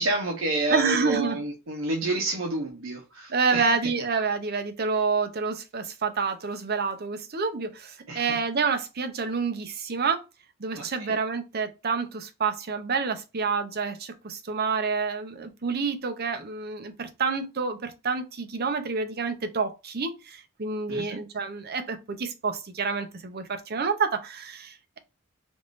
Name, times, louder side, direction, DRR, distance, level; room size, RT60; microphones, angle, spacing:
voice 1, 0.0-3.9 8.1-8.4 10.8-11.2 20.9-21.2, right 2 dB, 80° right, 0.8 m, -29 dB
voice 2, 0.7-1.4 3.3-10.2 10.6-25.0, right 5 dB, 50° right, 0.6 m, -28 dB
3.5 x 3.1 x 2.5 m
head